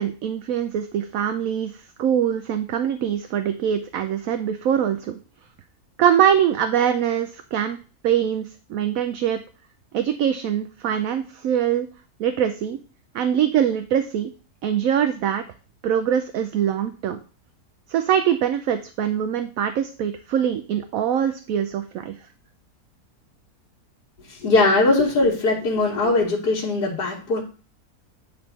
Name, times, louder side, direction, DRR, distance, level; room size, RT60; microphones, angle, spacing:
voice 1, 0.0-5.2 6.0-7.8 8.0-9.4 9.9-11.9 12.2-12.8 13.1-14.3 14.6-15.4 15.8-17.2 17.9-22.1, right 9 dB, 70° right, 8 dB, 0.9 m, -23 dB
voice 2, 24.3-27.4, left 2 dB, 85° left, -3 dB, 1.8 m, -20 dB
9.6 x 3.5 x 4.1 m, 0.38 s
omnidirectional pair, 1.7 m